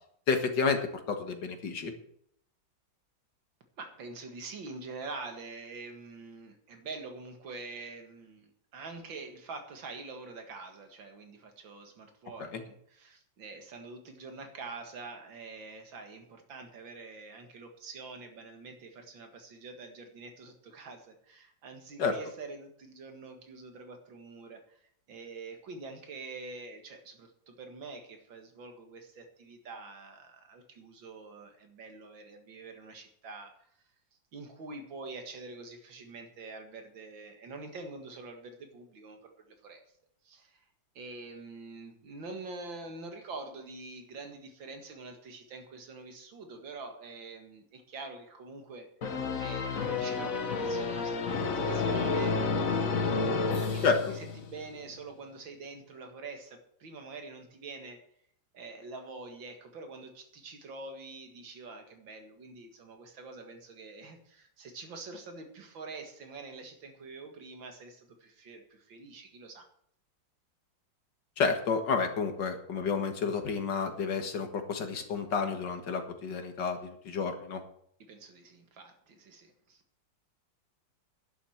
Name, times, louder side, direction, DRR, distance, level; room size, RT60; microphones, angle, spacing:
voice 1, 0.3-1.9 12.4-12.6 22.0-22.2 53.8-54.0 71.4-77.6, left 5 dB, 70° left, 6 dB, 2.2 m, -30 dB
voice 2, 3.8-24.8 25.1-33.5 34.3-39.3 39.6-39.8 40.2-40.6 40.9-48.9 49.4-52.4 53.0-58.0 58.5-69.7 78.0-79.8, right 3 dB, 85° right, 5 dB, 2.6 m, -45 dB
sound 1, 49.0-54.7, left 4 dB, 50° left, 1.5 m, -30 dB
11.0 x 7.4 x 7.9 m, 0.67 s
omnidirectional pair, 2.0 m